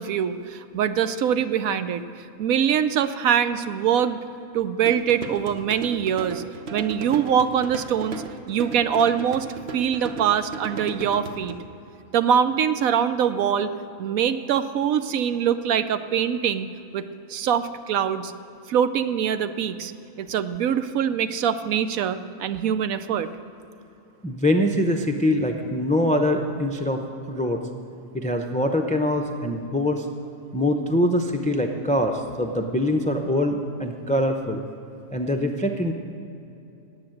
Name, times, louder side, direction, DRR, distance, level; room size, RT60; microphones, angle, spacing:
voice 1, 0.0-4.2 4.5-6.4 6.7-9.5 9.7-11.6 12.1-13.7 14.0-17.0 17.3-18.3 18.7-19.9 20.2-23.3, right 8 dB, 80° right, 11 dB, 1.1 m, -23 dB
sound 1, 4.8-11.5, right 4 dB, 50° right, 1.2 m, -36 dB
voice 2, 24.2-27.0 27.3-27.6 28.1-30.1 30.5-34.6 35.1-35.9, left 1 dB, 10° left, 4 dB, 0.5 m, -23 dB
19.0 x 7.8 x 7.8 m, 2.9 s
omnidirectional pair, 1.4 m